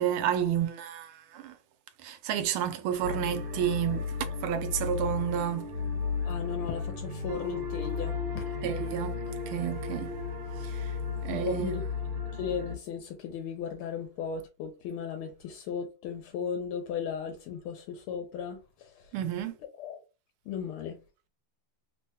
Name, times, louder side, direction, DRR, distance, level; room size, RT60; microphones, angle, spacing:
voice 1, 0.0-1.6 2.0-4.0 4.4-5.7 8.6-10.1 10.6-10.9 11.2-11.8 19.1-19.5, right 10 dB, 85° right, 1.5 m, -31 dB
sound 1, 3.0-12.8, left 5 dB, 70° right, 1.5 m, -34 dB
voice 2, 6.2-8.5 11.3-11.8 12.3-19.1 19.8-20.0 20.5-21.0, left 7 dB, 85° left, 1.5 m, -36 dB
3.6 x 2.2 x 2.7 m
omnidirectional pair, 2.3 m